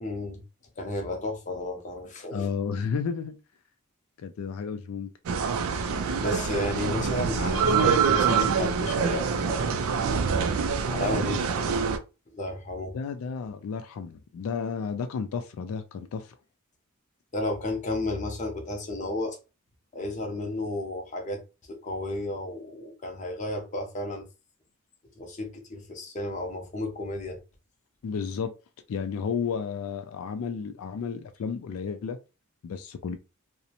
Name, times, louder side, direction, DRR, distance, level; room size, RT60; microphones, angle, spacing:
voice 1, 0.0-0.4 0.8-2.5 6.2-9.7 10.8-11.8 12.3-12.9 17.3-19.4 19.9-21.4 21.7-24.2 25.2-27.4, left 1 dB, 35° left, 0.6 m, -32 dB
voice 2, 2.3-3.4 4.2-5.1 12.9-16.4 28.0-28.5 28.9-32.2 32.6-33.2, left 6 dB, 80° left, 0.3 m, -32 dB
sound 1, 5.3-12.0, right 6 dB, 75° right, 0.3 m, -25 dB
2.5 x 2.1 x 2.8 m
head